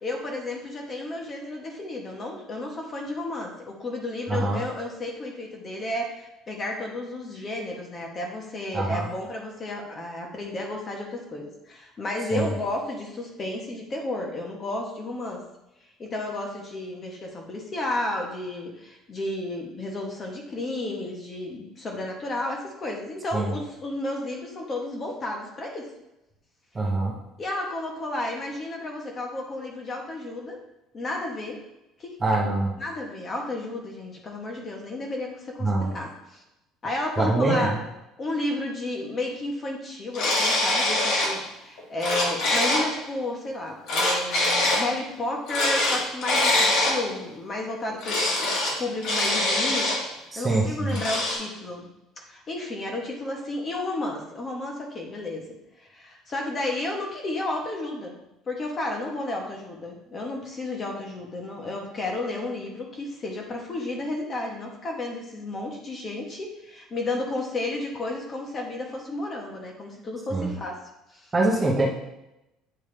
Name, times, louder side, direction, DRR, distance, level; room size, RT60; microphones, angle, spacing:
voice 1, 0.0-15.4 16.0-25.9 27.4-30.6 30.9-31.6 32.0-32.4 32.8-36.4 36.8-37.7 38.2-51.9 52.2-58.1 58.5-70.8 71.1-71.3, left 2 dB, 30° left, 1 dB, 1.1 m, -32 dB
voice 2, 4.3-4.6 8.7-9.1 12.3-12.5 23.3-23.5 26.7-27.2 32.2-32.7 35.6-35.9 37.2-37.8 50.3-51.0 70.3-70.5 71.3-71.9, right 2 dB, 20° right, -2 dB, 1.0 m, -24 dB
sound 1, 40.1-41.3 41.8-42.9 43.9-44.8 45.5-47.0 48.0-48.7 49.0-50.0 50.9-51.4, left 2 dB, 70° left, 2.2 m, -23 dB
8.8 x 3.5 x 3.3 m, 0.91 s
cardioid pair, 135°, 0 cm